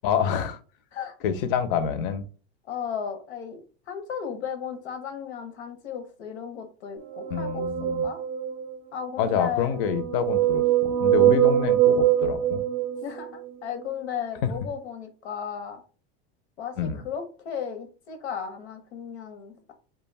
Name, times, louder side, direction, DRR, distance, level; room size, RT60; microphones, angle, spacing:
voice 1, 0.0-0.6 1.2-2.2 7.3-8.0 9.2-12.6 14.4-14.5 16.8-17.0, left 7 dB, 55° left, 0.5 m, -27 dB
voice 2, 2.7-8.2 8.9-9.8 13.0-15.8 16.6-19.7, left 7 dB, 85° left, 0.8 m, -35 dB
sound 1, 7.1-8.8 9.6-13.5, right 11 dB, 40° right, 0.4 m, -23 dB
2.2 x 2.2 x 3.2 m
supercardioid pair, 135°, 32 cm